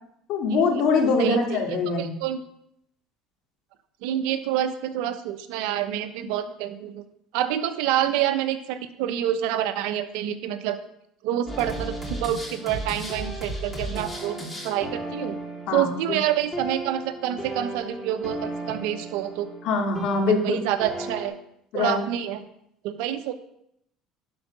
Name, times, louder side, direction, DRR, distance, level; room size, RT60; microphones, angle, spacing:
voice 1, 0.3-2.1 15.7-16.2 19.6-20.6 21.7-22.0, left 4 dB, 65° left, 2 dB, 2.4 m, -23 dB
voice 2, 1.2-1.6 2.0-2.4 4.0-7.0 7.3-10.8 11.2-14.4 14.6-15.3 15.7-19.5 20.3-21.3 21.7-22.4 22.8-23.3, right 11 dB, 80° right, 10 dB, 0.9 m, -27 dB
sound 1, 11.5-21.3, right 1 dB, 15° left, 3.0 m, -35 dB
11.5 x 4.8 x 6.1 m, 0.75 s
supercardioid pair, 100°, 0 cm